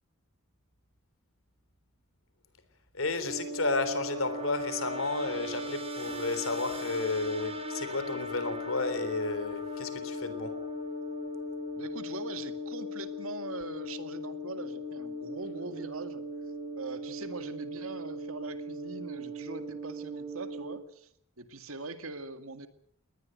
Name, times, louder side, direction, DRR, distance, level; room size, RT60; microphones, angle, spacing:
voice 1, 2.9-10.5, left 3 dB, 70° left, 11 dB, 3.6 m, -32 dB
sound 1, 3.1-20.8, left 1 dB, 30° right, 5.1 m, -38 dB
voice 2, 11.8-16.2 16.8-21.1 21.4-22.7, right 3 dB, 80° right, 9 dB, 2.2 m, -42 dB
21.5 x 19.0 x 7.8 m, 0.68 s
head